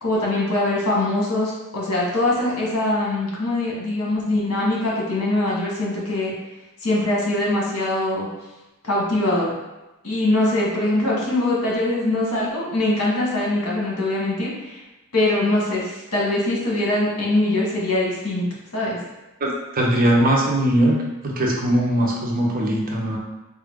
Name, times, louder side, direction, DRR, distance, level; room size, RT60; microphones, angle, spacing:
voice 1, 0.0-6.3 6.8-8.3 8.8-9.5 10.0-14.8 15.1-18.4 18.7-19.0, left 1 dB, 75° left, -4 dB, 1.2 m, -22 dB
voice 2, 19.4-21.0 21.2-23.2, right 1 dB, 40° right, -2 dB, 0.7 m, -20 dB
3.8 x 2.4 x 3.5 m, 1.0 s
head